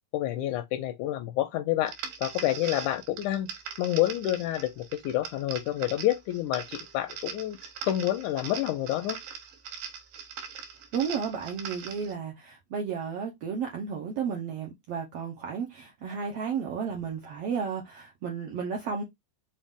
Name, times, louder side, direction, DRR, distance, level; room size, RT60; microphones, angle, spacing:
voice 1, 0.1-1.9 2.2-3.5 3.8-7.6 7.8-9.2, left 14 dB, 80° left, 1.8 m, -28 dB
sound 1, 1.9-12.1, right 7 dB, 90° right, 2.6 m, -41 dB
voice 2, 10.9-19.0, right 6 dB, 75° right, 1.4 m, -33 dB
5.6 x 2.5 x 3.5 m
omnidirectional pair, 3.8 m